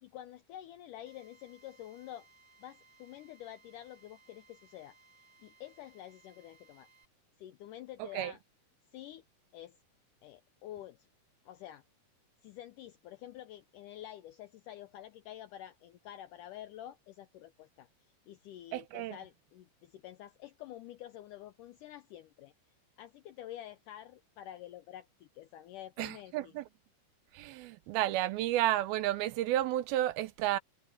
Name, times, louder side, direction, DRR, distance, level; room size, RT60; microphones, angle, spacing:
voice 1, 0.0-2.3 2.6-5.0 5.4-6.9 7.4-8.4 8.9-9.2 9.5-9.8 10.2-11.1 11.5-11.8 12.4-17.9 18.3-22.5 23.0-26.5, left 12 dB, 80° left, 1.9 m, -48 dB
Drill, 1.1-7.1, right 4 dB, 30° right, 4.2 m, -64 dB
voice 2, 18.7-19.2 26.0-26.7 27.3-30.6, right 14 dB, 80° right, 2.6 m, -31 dB
omnidirectional pair, 4.5 m